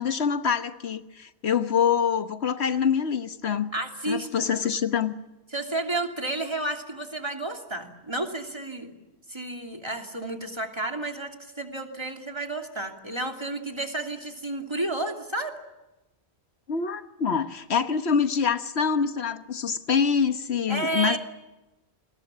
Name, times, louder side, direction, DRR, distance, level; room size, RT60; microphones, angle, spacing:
voice 1, 0.0-3.7 4.1-5.1 16.7-21.2, left 7 dB, 75° left, 1.4 m, -25 dB
voice 2, 3.7-4.3 5.5-9.0 9.3-15.6 20.7-21.2, right 2 dB, 25° right, 2.9 m, -31 dB
29.0 x 21.5 x 7.4 m
omnidirectional pair, 1.1 m